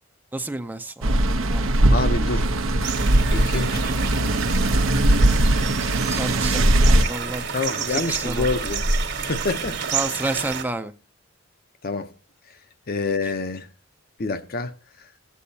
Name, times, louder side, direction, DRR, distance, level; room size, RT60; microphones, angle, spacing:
voice 1, 0.3-1.2 1.5-1.7 6.2-7.5 7.9-8.5 9.9-10.9, right 2 dB, 10° right, 0.5 m, -30 dB
sound 1, 1.0-7.0, right 1 dB, 80° right, 0.9 m, -19 dB
voice 2, 1.9-2.4 2.9-3.0 3.3-3.8 7.5-8.8 9.2-9.8 11.8-12.1 12.9-13.7 14.2-14.7, left 3 dB, 50° left, 0.8 m, -27 dB
sound 2, 2.8-10.6, right 5 dB, 60° right, 1.5 m, -29 dB
16.0 x 8.4 x 2.8 m
head